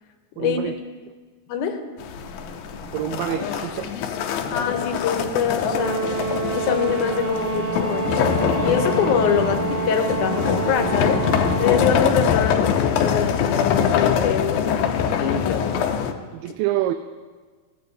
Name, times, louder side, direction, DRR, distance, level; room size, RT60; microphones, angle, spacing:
voice 1, 0.4-0.8 2.9-3.9 16.3-16.9, right 14 dB, 90° right, 8 dB, 2.3 m, -26 dB
voice 2, 1.5-1.8 4.4-6.0 6.5-8.2 8.6-15.8, left 7 dB, 75° left, 6 dB, 2.2 m, -24 dB
sound 1, 2.0-16.1, left 7 dB, 90° left, 2.5 m, -24 dB
sound 2, 2.2-15.1, right 3 dB, 45° right, 1.4 m, -37 dB
Brass instrument, 5.6-12.0, right 4 dB, 70° right, 2.4 m, -28 dB
16.0 x 16.0 x 2.7 m, 1.5 s
omnidirectional pair, 3.9 m